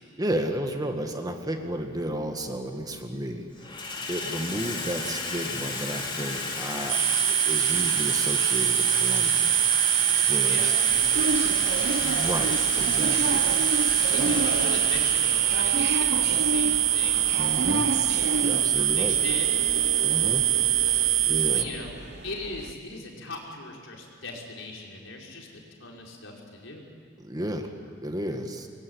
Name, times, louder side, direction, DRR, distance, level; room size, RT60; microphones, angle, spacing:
voice 1, 0.2-3.8 4.1-9.6 10.3-10.7 12.0-13.5 14.2-14.5 17.4-17.9 18.4-19.2 20.0-20.5 21.0-21.7 27.2-27.7 28.0-28.7, right 1 dB, 20° right, 5 dB, 1.8 m, -33 dB
Water tap faucet / Sink (filling or washing), 1.6-1.8 2.7-3.1 3.4-21.0, left 3 dB, 25° left, 3.6 m, -34 dB
sound 1, 6.9-21.6, right 13 dB, 80° right, 1.0 m, -24 dB
voice 2, 10.4-11.9 14.1-17.3 18.4-19.6 21.5-21.9 22.2-25.5 25.8-26.8, left 2 dB, 75° left, -1 dB, 5.1 m, -39 dB
sound 2, 10.9-22.7, right 2 dB, 60° right, 1.0 m, -32 dB
26.0 x 21.5 x 9.8 m, 2.2 s
head